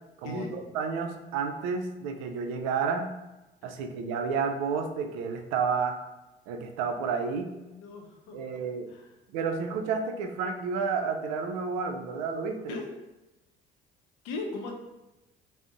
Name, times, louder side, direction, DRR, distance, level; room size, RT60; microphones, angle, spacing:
voice 1, 0.2-3.1 3.6-6.0 6.5-7.5 8.3-8.9 9.3-12.7, right 5 dB, 60° right, 5 dB, 0.4 m, -31 dB
voice 2, 7.6-8.4 8.9-9.1 12.7-12.9 14.2-14.7, left 3 dB, 65° left, 1 dB, 0.6 m, -38 dB
2.5 x 2.0 x 3.7 m, 1.0 s
hypercardioid pair, 55°, 29 cm